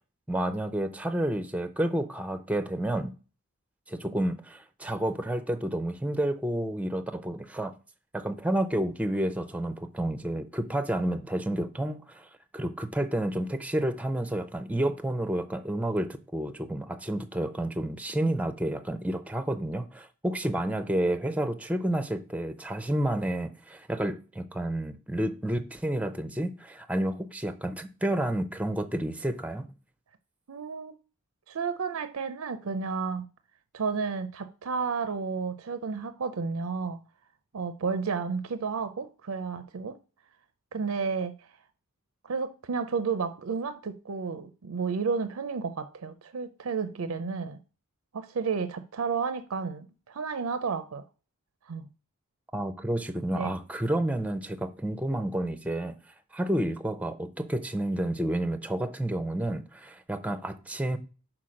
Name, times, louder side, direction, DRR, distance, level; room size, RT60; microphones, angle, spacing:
voice 1, 0.3-3.1 3.9-7.7 8.1-29.7 52.5-56.0 56.3-61.0, right 1 dB, 5° right, 0.5 m, -30 dB
voice 2, 30.5-30.9 31.5-33.3 33.7-37.0 37.5-40.0 40.7-41.5 42.2-47.6 48.1-51.0 51.7-51.9 53.3-53.5, right 5 dB, 80° right, 0.5 m, -32 dB
5.8 x 4.5 x 6.3 m
head